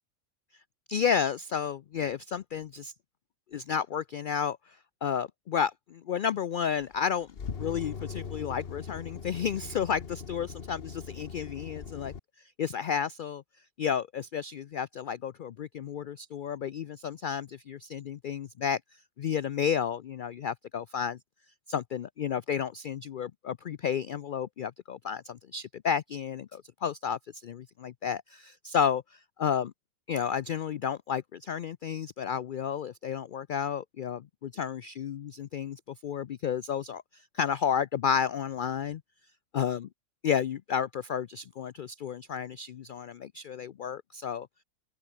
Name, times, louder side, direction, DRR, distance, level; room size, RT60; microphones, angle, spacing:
voice 1, 0.9-2.9 3.5-7.3 7.6-13.4 13.8-18.8 19.2-21.2 21.7-29.7 30.1-39.0 39.5-39.9 40.2-44.5, left 7 dB, 75° left, 0.4 m, -32 dB
sound 1, 6.6-12.2, left 6 dB, 45° left, 1.4 m, -40 dB
open air
omnidirectional pair, 1.4 m